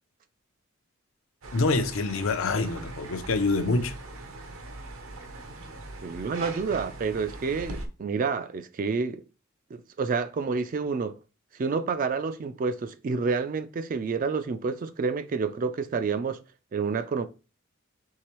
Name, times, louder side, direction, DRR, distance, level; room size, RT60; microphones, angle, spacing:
sound 1, 1.4-7.9, right 2 dB, 70° right, 0.7 m, -41 dB
voice 1, 1.5-3.9, left 3 dB, 65° left, 0.5 m, -26 dB
voice 2, 6.0-9.2 9.7-11.2 11.5-16.4 16.7-17.2, right 5 dB, 40° right, 0.3 m, -29 dB
4.7 x 3.2 x 3.0 m
head